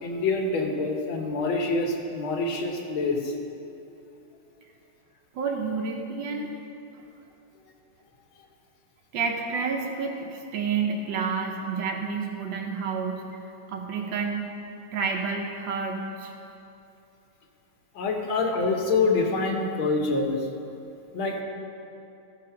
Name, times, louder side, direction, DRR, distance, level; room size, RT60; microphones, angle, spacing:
voice 1, 0.0-3.3 18.0-20.4 21.1-21.4, left 3 dB, 85° left, 1 dB, 1.9 m, -26 dB
voice 2, 5.3-6.5 9.1-13.2 13.7-14.5 14.9-16.3, right 5 dB, 70° right, 2 dB, 1.4 m, -29 dB
13.5 x 5.1 x 5.7 m, 2.9 s
omnidirectional pair, 2.2 m